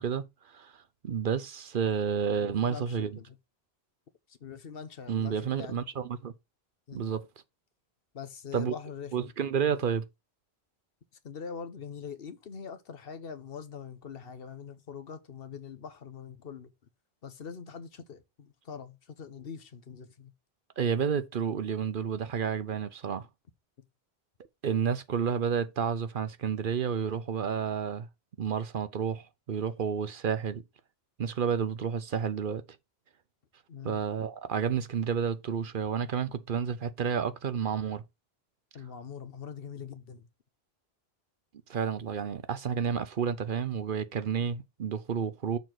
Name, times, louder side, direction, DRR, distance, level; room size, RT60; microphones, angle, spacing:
voice 1, 0.0-3.1 5.1-6.3 6.9-7.3 8.5-8.7 9.1-10.1 20.8-23.3 24.6-28.1 28.4-30.6 31.2-32.6 33.8-38.0 41.7-45.6, right 7 dB, 60° right, 0.8 m, -30 dB
voice 2, 2.3-3.4 4.3-6.1 6.9-7.1 8.1-9.3 11.2-16.7 17.2-20.3 33.7-34.0 38.7-40.3, left 6 dB, 65° left, 1.1 m, -43 dB
6.9 x 3.9 x 5.9 m
omnidirectional pair, 1.1 m